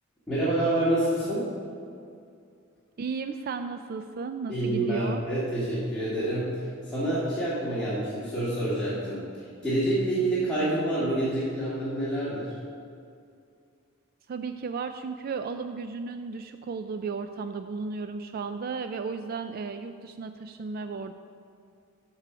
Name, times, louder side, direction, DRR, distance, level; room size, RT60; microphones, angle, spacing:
voice 1, 0.3-1.5 4.5-12.5, right 1 dB, 5° left, -13 dB, 2.1 m, -27 dB
voice 2, 3.0-5.2 14.3-21.1, right 4 dB, 50° right, 9 dB, 0.4 m, -34 dB
11.5 x 4.8 x 6.7 m, 2.3 s
head